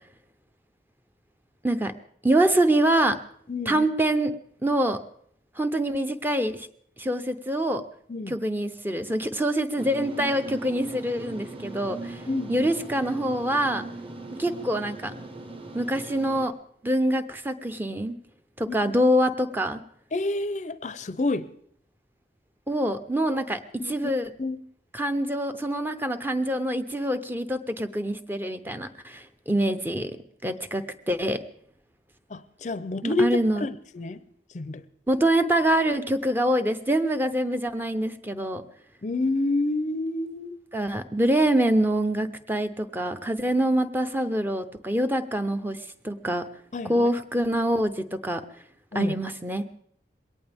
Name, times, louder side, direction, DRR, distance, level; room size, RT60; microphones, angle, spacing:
voice 1, 2.2-3.2 3.7-4.3 4.6-5.0 5.6-6.7 7.0-7.8 8.3-12.2 12.5-13.9 14.4-15.1 15.7-16.5 16.8-18.2 18.6-19.8 22.7-24.3 24.9-30.2 30.4-31.4 33.0-33.7 35.1-38.6 40.7-46.5 46.9-48.4 48.9-49.7, right 1 dB, 10° right, 8 dB, 0.6 m, -25 dB
voice 2, 3.5-3.8 8.1-8.3 12.3-12.7 18.7-18.9 20.1-21.5 23.8-23.9 24.4-24.6 32.3-33.3 33.5-34.2 34.5-34.8 39.0-40.6 46.7-47.1 48.9-49.1, left 2 dB, 40° left, 14 dB, 0.5 m, -28 dB
sound 1, 9.8-16.5, right 2 dB, 30° right, 1.3 m, -39 dB
21.5 x 18.0 x 3.5 m, 0.65 s
head